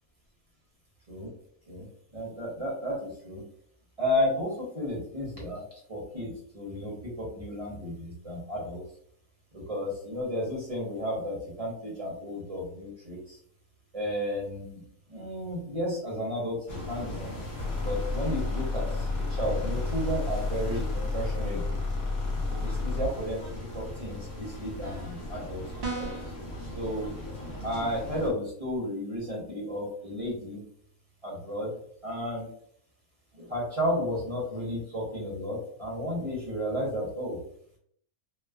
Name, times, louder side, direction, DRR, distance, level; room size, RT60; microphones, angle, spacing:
voice 1, 2.1-3.4 4.0-8.8 9.5-13.4 13.9-14.8 15.1-17.3 17.8-21.8 22.5-23.4 23.7-26.1 26.7-27.1 27.6-30.6 31.2-31.7 32.0-32.5 33.3-37.4, equal, 30° right, -5 dB, 0.9 m, -33 dB
sound 1, 16.7-28.3, left 1 dB, 45° left, 0.9 m, -39 dB
sound 2, 17.6-23.1, left 3 dB, 90° left, 1.2 m, -31 dB
sound 3, 25.8-26.4, right 3 dB, 55° right, 0.5 m, -34 dB
3.1 x 2.0 x 2.3 m, 0.64 s
omnidirectional pair, 1.4 m